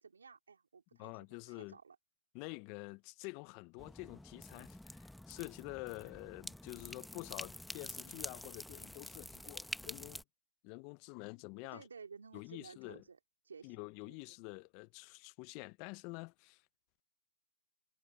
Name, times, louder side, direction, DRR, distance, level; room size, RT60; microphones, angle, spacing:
voice 1, 0.0-2.0 11.7-13.2 13.4-14.2, right 5 dB, 90° right, 3.1 m, -55 dB
voice 2, 1.0-1.8 2.3-10.2 10.6-11.8 12.3-13.0 13.6-16.6, left 29 dB, 30° left, 0.4 m, -48 dB
sound 1, 3.8-10.2, left 1 dB, ahead, 0.8 m, -48 dB
hypercardioid pair, 155°, 0 cm